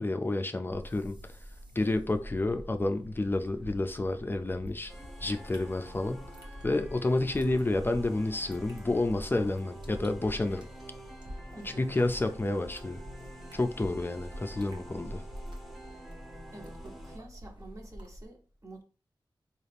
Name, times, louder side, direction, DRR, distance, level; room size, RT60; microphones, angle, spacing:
voice 1, 0.0-1.4 1.7-4.9 5.2-6.3 6.6-10.7 11.8-13.0 13.5-15.2, left 2 dB, 25° left, 0.4 m, -30 dB
sound 1, 0.7-18.2, equal, 60° right, 0.9 m, -46 dB
sound 2, 4.9-17.2, right 1 dB, ahead, 0.8 m, -49 dB
voice 2, 11.5-12.0 16.5-18.8, right 2 dB, 35° right, 0.9 m, -48 dB
3.9 x 2.4 x 3.4 m
wide cardioid pair, 85°, 9 cm